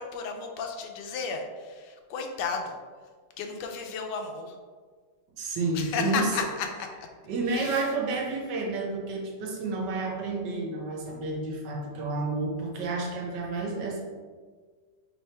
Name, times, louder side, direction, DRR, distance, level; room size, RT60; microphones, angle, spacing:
voice 1, 0.0-2.7 3.4-4.6 5.7-6.7 7.5-7.8, left 5 dB, 85° left, 4 dB, 1.2 m, -33 dB
voice 2, 5.4-6.3 7.2-14.0, right 3 dB, 75° right, -1 dB, 1.4 m, -30 dB
3.4 x 3.4 x 4.2 m, 1.5 s
omnidirectional pair, 1.9 m